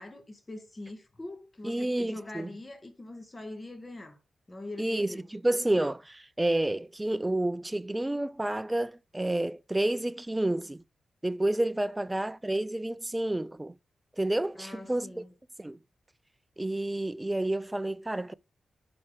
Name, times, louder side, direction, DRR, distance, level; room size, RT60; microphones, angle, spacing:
voice 1, 0.0-4.2 4.5-5.3 14.6-15.3, left 2 dB, 25° left, 1.8 m, -43 dB
voice 2, 1.6-2.5 4.8-10.8 11.2-13.8 14.2-15.1 15.6-15.8 16.6-18.3, right 1 dB, 15° right, 0.3 m, -30 dB
6.0 x 4.3 x 4.8 m
cardioid pair, 65°, 0 cm